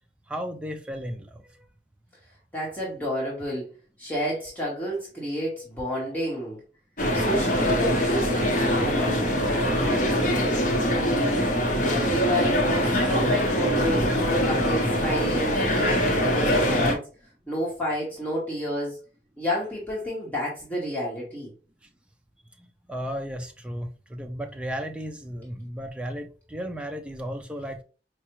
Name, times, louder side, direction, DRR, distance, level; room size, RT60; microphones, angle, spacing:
voice 1, 0.3-1.7 10.3-10.8 22.6-27.8, equal, 5° right, 0.4 m, -35 dB
voice 2, 2.5-3.7 4.0-6.6 7.1-9.7 11.9-17.1 17.5-19.0 19.4-21.5, equal, 10° left, 0.9 m, -30 dB
sound 1, 7.0-16.9, equal, 45° left, 0.7 m, -23 dB
4.6 x 2.0 x 2.9 m
head